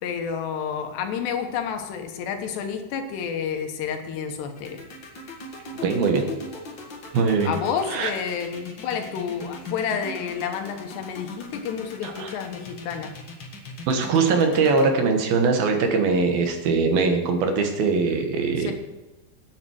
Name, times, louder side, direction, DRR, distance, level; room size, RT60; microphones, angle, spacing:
voice 1, 0.0-4.8 7.5-13.1 18.6-18.7, left 7 dB, 80° left, 5 dB, 3.3 m, -30 dB
sound 1, 4.6-14.8, left 3 dB, 60° left, 1.1 m, -39 dB
voice 2, 5.8-6.3 7.1-7.5 7.9-8.1 12.0-12.3 13.9-18.7, right 4 dB, 70° right, 4 dB, 3.0 m, -21 dB
10.0 x 9.4 x 6.4 m, 1.1 s
omnidirectional pair, 4.9 m